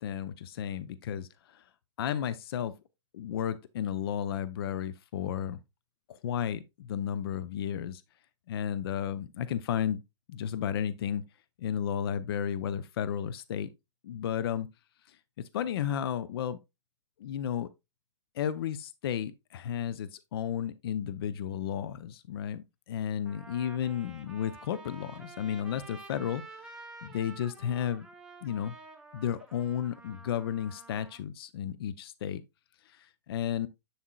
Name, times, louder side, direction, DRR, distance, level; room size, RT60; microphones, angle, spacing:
voice 1, 0.0-1.6 2.0-2.7 3.1-5.6 6.1-8.0 8.5-10.0 10.3-11.2 11.6-13.7 14.0-14.7 15.5-16.6 17.2-17.7 18.3-26.4 27.0-28.1 28.4-28.7 29.1-32.4 32.9-33.7, left 9 dB, 50° left, 0.5 m, -33 dB
Trumpet, 22.5-22.6 23.2-31.2, right 3 dB, 5° right, 1.0 m, -50 dB
7.2 x 7.1 x 2.3 m
figure-of-eight pair, 115°, 16 cm